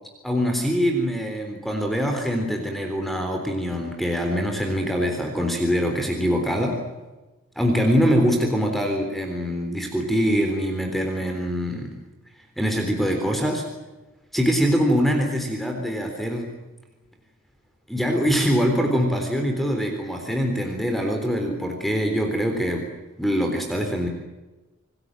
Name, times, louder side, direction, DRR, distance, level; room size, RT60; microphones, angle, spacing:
voice 1, 0.2-6.8 7.6-12.0 12.6-13.6 14.3-16.5 17.9-22.9 23.2-24.1, equal, ahead, 3 dB, 3.7 m, -23 dB
28.0 x 20.5 x 7.7 m, 1.1 s
head